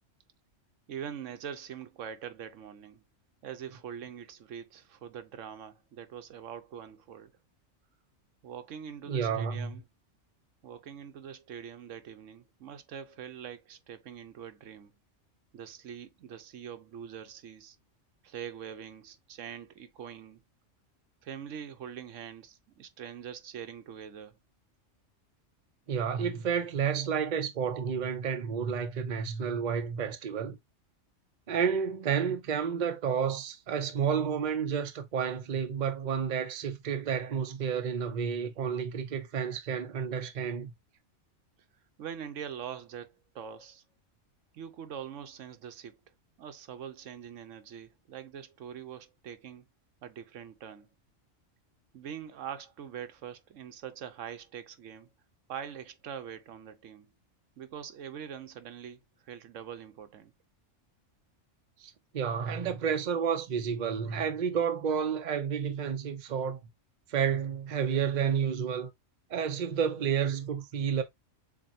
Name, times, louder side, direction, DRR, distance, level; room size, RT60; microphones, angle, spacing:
voice 1, 0.9-3.0 3.4-7.3 8.4-9.8 10.6-14.9 15.5-17.8 18.2-20.4 21.2-24.4 42.0-43.8 44.5-46.0 46.4-49.6 50.0-50.9 51.9-55.1 55.5-57.1 57.6-59.0 59.3-60.3, right 8 dB, 80° right, 1.1 m, -43 dB
voice 2, 9.1-9.7 25.9-30.6 31.5-40.7 61.8-66.6 67.1-68.9 69.3-71.0, right 7 dB, 45° right, 0.7 m, -30 dB
7.2 x 2.6 x 2.6 m
omnidirectional pair, 1.3 m